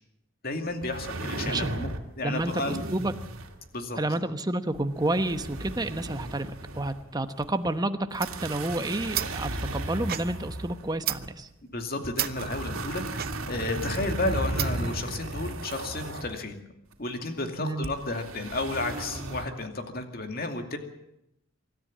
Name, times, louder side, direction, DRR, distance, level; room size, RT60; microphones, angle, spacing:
voice 1, 0.4-2.8 3.7-4.0 11.7-16.6 17.0-20.8, left 2 dB, 45° left, 6 dB, 2.5 m, -32 dB
sound 1, 0.8-2.1 2.4-3.7 4.7-7.0 7.4-7.5 8.1-11.3 12.0-16.4 17.8-19.5, right 2 dB, 85° right, 2.5 m, -35 dB
voice 2, 2.2-3.1 4.0-11.5 17.6-17.9, right 1 dB, 20° right, 9 dB, 1.0 m, -30 dB
sound 2, 8.0-15.0, right 12 dB, 45° right, 0.8 m, -36 dB
25.0 x 13.5 x 8.7 m, 0.82 s
head